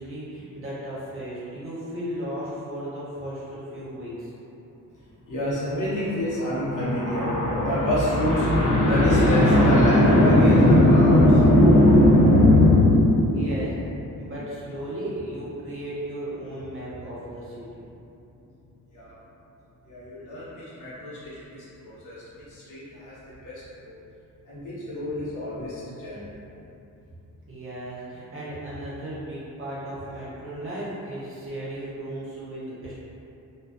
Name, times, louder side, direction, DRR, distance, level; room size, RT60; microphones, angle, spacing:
voice 1, 0.0-4.3 13.3-13.7 14.2-17.8 27.5-33.0, right 1 dB, 40° right, -9 dB, 0.6 m, -35 dB
voice 2, 5.3-13.6 14.1-14.3 18.9-19.1 19.9-22.2 22.5-23.1 23.4-23.5 23.8-23.9 24.4-26.3, left 1 dB, 65° left, -10 dB, 0.9 m, -20 dB
2.3 x 2.2 x 2.4 m, 2.8 s
wide cardioid pair, 120°, 33 cm